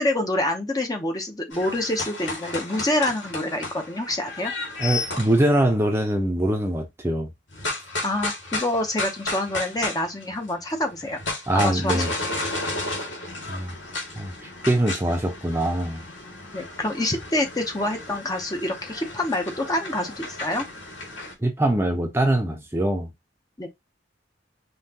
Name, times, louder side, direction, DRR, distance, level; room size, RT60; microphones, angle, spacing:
voice 1, 0.0-4.5 8.0-11.2 11.5-12.0 16.5-20.7 23.6-23.7, left 1 dB, 20° left, 0.9 m, -26 dB
sound 1, 1.5-5.4 7.5-10.5 10.8-21.3, left 2 dB, 85° left, 2.2 m, -33 dB
voice 2, 4.8-7.3 11.5-12.1 13.5-13.7 14.2-14.3 14.6-16.0 21.4-23.1, right 1 dB, 15° right, 0.8 m, -23 dB
5.6 x 3.0 x 2.9 m
head